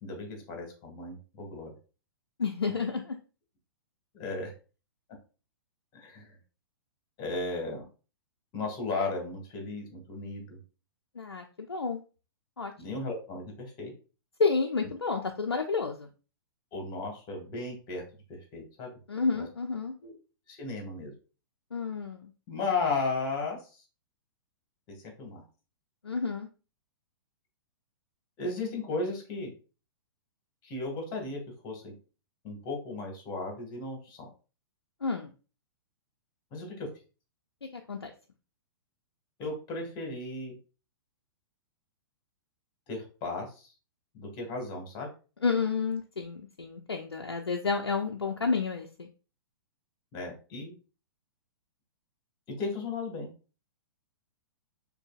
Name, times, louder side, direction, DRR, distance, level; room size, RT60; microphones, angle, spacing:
voice 1, 0.0-1.7 4.1-4.5 5.9-6.3 7.2-7.8 8.5-10.6 12.8-13.9 16.7-18.0 18.3-18.9 19.3-19.4 20.0-20.1 20.5-21.1 22.5-23.7 24.9-25.4 28.4-29.5 30.6-31.9 32.4-34.3 36.5-36.9 39.4-40.6 42.9-43.7 44.1-45.1 50.1-50.7 52.6-53.3, left 3 dB, 35° left, 2 dB, 1.7 m, -35 dB
voice 2, 2.4-3.2 11.2-12.0 12.6-12.7 14.4-16.1 19.1-19.9 21.7-22.3 26.0-26.5 35.0-35.3 37.7-38.1 45.4-49.1, left 4 dB, 90° left, 3 dB, 0.4 m, -30 dB
6.2 x 2.7 x 2.3 m, 0.34 s
figure-of-eight pair, 115°, 13 cm